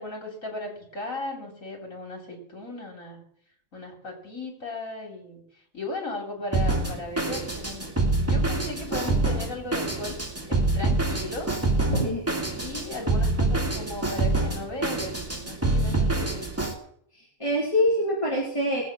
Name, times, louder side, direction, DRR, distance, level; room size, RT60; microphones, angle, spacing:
voice 1, 0.0-3.2 3.7-5.4 5.7-7.9 8.2-10.2 10.5-11.5 12.5-16.5, left 2 dB, 85° left, 1 dB, 4.1 m, -36 dB
Drum kit, 6.5-16.7, right 2 dB, 10° right, 2.3 m, -26 dB
voice 2, 11.9-12.3 17.1-18.8, equal, 25° left, -5 dB, 3.9 m, -25 dB
19.5 x 8.3 x 6.2 m, 0.66 s
omnidirectional pair, 1.4 m